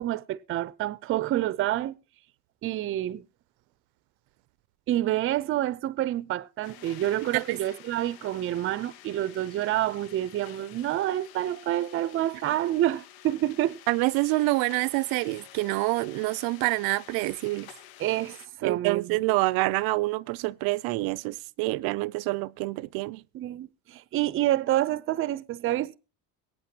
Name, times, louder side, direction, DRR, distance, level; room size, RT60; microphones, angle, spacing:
voice 1, 0.0-2.0 2.6-3.2 4.9-13.8 18.0-19.2 23.3-26.0, right 13 dB, 40° right, 0.5 m, -28 dB
sound 1, 6.6-18.5, left 12 dB, 85° left, 1.1 m, -50 dB
voice 2, 13.9-17.7 18.6-23.2, right 21 dB, 85° right, 0.6 m, -27 dB
22.0 x 9.0 x 2.8 m
cardioid pair, 170°, 35 cm